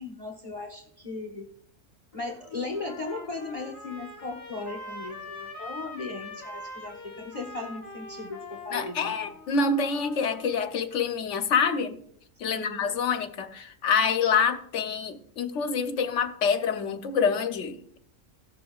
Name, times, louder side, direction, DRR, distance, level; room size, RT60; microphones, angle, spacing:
voice 1, 0.0-1.5 2.1-9.2 12.5-12.8, left 3 dB, 30° left, 1.1 m, -37 dB
Trumpet, 2.1-10.6, left 2 dB, 10° left, 2.3 m, -43 dB
voice 2, 8.7-12.0 12.4-18.0, left 5 dB, 70° left, 1.0 m, -26 dB
17.5 x 6.9 x 2.3 m
omnidirectional pair, 1.3 m